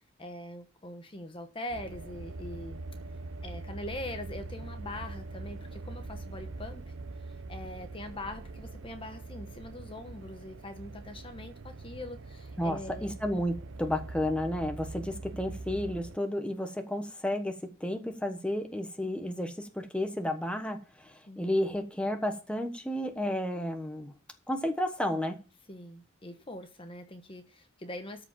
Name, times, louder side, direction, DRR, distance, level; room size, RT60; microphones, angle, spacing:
voice 1, 0.2-2.8 3.4-6.8 7.5-13.1 21.3-21.4 25.7-28.3, left 1 dB, 25° left, 1.1 m, -42 dB
sound 1, 1.7-16.2, right 2 dB, 85° right, 0.7 m, -43 dB
voice 2, 12.6-24.1 24.5-25.4, left 1 dB, 5° left, 1.2 m, -32 dB
13.0 x 5.1 x 7.3 m
head